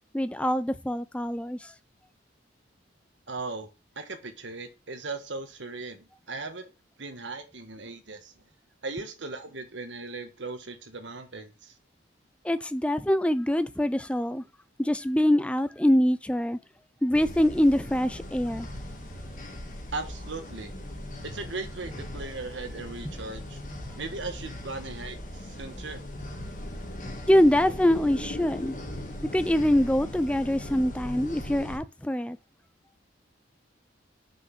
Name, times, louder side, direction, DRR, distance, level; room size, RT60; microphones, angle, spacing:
voice 1, 0.1-1.7 12.4-14.4 14.8-16.6 17.0-18.7 27.3-28.7 29.3-32.4, left 1 dB, 5° left, 0.4 m, -24 dB
voice 2, 3.3-3.7 3.9-6.7 7.0-8.3 8.8-11.7 19.9-20.7 21.2-23.6 24.0-26.0, right 3 dB, 75° right, 1.4 m, -38 dB
sound 1, 17.1-31.8, left 1 dB, 40° left, 1.8 m, -39 dB
6.1 x 5.3 x 5.8 m
head